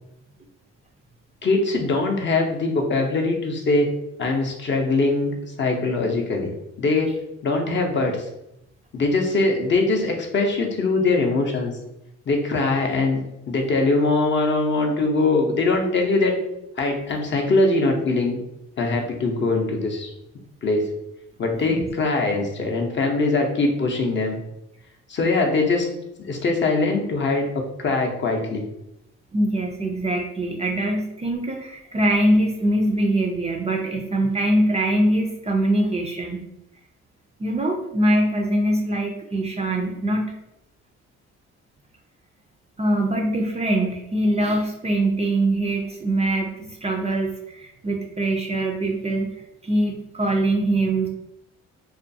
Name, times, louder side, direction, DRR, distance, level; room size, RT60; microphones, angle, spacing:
voice 1, 1.4-3.9 4.2-6.5 6.8-8.3 8.9-11.7 12.3-16.3 16.8-18.4 18.8-20.1 20.6-20.9 21.4-24.4 25.1-25.9 26.2-27.5 27.8-28.6, left 3 dB, 40° left, 1 dB, 0.6 m, -22 dB
voice 2, 29.3-36.5 37.4-40.3 42.8-49.3 49.6-51.1, right 1 dB, 25° right, 1 dB, 0.3 m, -23 dB
2.4 x 2.3 x 2.6 m, 0.83 s
cardioid pair, 90°, 30 cm